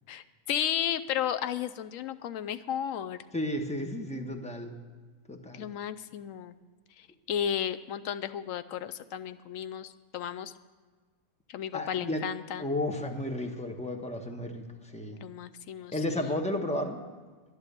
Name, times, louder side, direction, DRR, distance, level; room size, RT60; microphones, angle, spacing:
voice 1, 0.1-3.2 5.5-6.6 7.0-10.5 11.5-12.6 15.2-16.3, left 9 dB, 70° left, 13 dB, 0.9 m, -34 dB
voice 2, 3.3-4.7 5.3-5.7 11.7-12.2 12.6-15.2 15.9-17.0, left 1 dB, 5° left, 3 dB, 0.9 m, -33 dB
11.5 x 11.0 x 6.7 m, 1.4 s
omnidirectional pair, 1.5 m